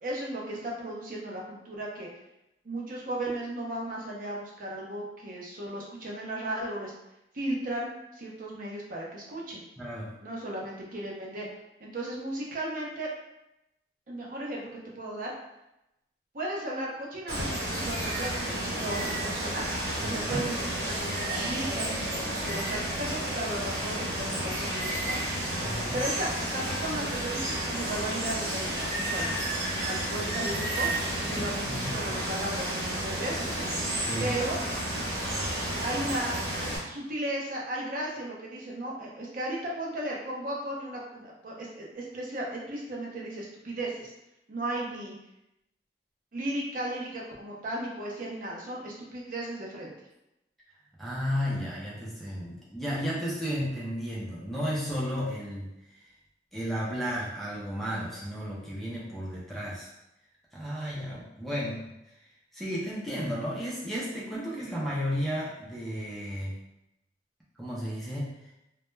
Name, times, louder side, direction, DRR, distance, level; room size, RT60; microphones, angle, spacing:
voice 1, 0.0-2.1 2.6-6.9 7.3-9.6 10.2-11.5 11.8-13.1 14.1-14.7 15.0-15.3 16.3-19.7 20.0-25.2 25.9-29.4 29.9-33.7 34.2-34.6 35.8-36.4 36.9-44.1 44.5-45.2 46.3-49.9, right 1 dB, 50° right, -3 dB, 0.5 m, -35 dB
voice 2, 9.8-10.1 20.0-20.5 25.6-26.0 31.2-32.1 34.0-34.3 51.0-55.7 56.0-56.1 56.5-59.9 60.5-61.9 62.5-66.5 67.6-68.3, equal, ahead, -7 dB, 0.4 m, -33 dB
Water, 17.3-36.8, right 1 dB, 70° right, 0.9 m, -31 dB
2.1 x 2.1 x 3.0 m, 0.87 s
head